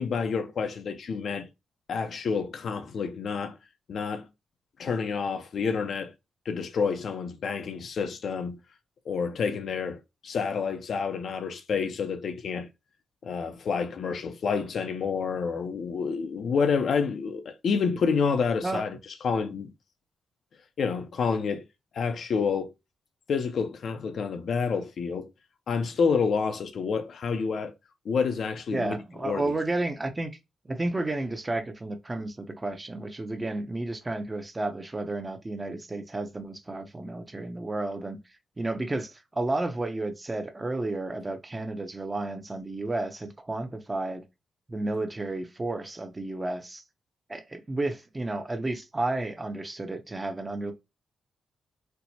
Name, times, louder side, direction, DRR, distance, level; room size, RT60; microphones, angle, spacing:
voice 1, 0.0-1.5 1.9-3.6 3.9-4.3 4.8-6.1 6.5-8.6 9.1-12.7 13.2-19.0 19.2-19.7 20.8-21.6 21.9-22.7 23.3-25.3 25.7-27.7 28.0-29.4, left 5 dB, 60° left, 0.5 m, -28 dB
voice 2, 28.7-30.3 30.6-44.2 44.7-46.8 47.3-50.7, right 2 dB, 20° right, 0.5 m, -32 dB
4.4 x 2.1 x 2.7 m
cardioid pair, 120°, 0 cm